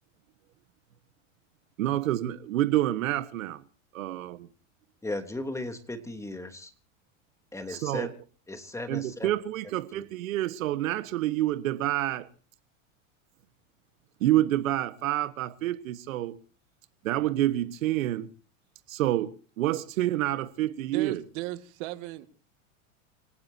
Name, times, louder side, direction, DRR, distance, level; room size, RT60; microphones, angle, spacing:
voice 1, 1.8-3.6 3.9-4.5 7.7-8.1 8.9-12.3 14.2-16.4 17.0-18.3 18.9-19.3 19.6-21.2, right 14 dB, 75° right, 1.5 m, -28 dB
voice 2, 5.0-6.7 7.5-8.1 8.5-9.3 9.9-10.0, left 2 dB, 5° left, 3.2 m, -36 dB
voice 3, 20.9-22.3, right 18 dB, 60° right, 2.3 m, -36 dB
26.5 x 17.5 x 2.8 m
hypercardioid pair, 110°, 40 cm